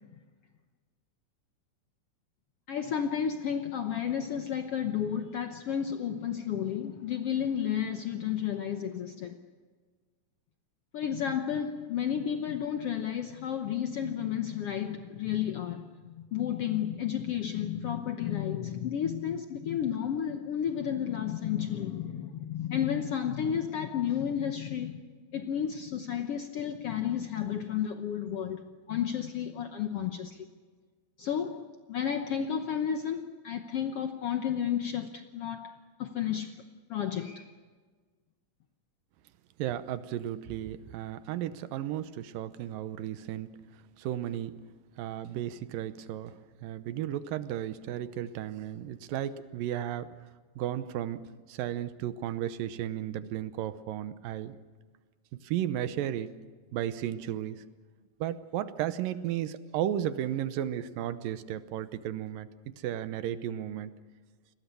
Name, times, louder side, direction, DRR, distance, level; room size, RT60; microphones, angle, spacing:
voice 1, 2.7-9.4 10.9-25.0 25.3-30.5 31.2-31.6 31.9-35.7 36.0-36.5 36.9-37.5, left 9 dB, 70° left, 6 dB, 1.4 m, -32 dB
voice 2, 39.6-43.6 44.0-44.5 45.0-50.1 50.6-54.6 55.4-56.4 56.7-57.6 58.2-62.5 62.8-63.9, right 11 dB, 85° right, 13 dB, 2.6 m, -34 dB
30.0 x 21.0 x 7.0 m, 1.5 s
omnidirectional pair, 3.9 m